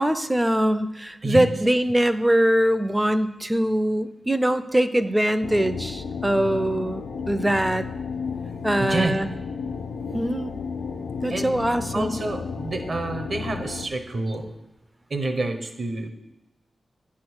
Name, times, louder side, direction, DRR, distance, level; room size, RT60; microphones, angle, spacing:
voice 1, 0.0-7.9 8.6-9.3 10.1-10.5 11.2-12.2, right 1 dB, 10° right, 12 dB, 0.4 m, -22 dB
voice 2, 1.2-1.5 8.8-9.1 11.3-11.5 11.9-14.5 15.1-16.1, right 2 dB, 50° right, 7 dB, 0.9 m, -28 dB
sound 1, 5.4-13.9, left 5 dB, 85° left, 0.6 m, -33 dB
9.4 x 3.8 x 6.1 m, 1.0 s
wide cardioid pair, 110°, 0 cm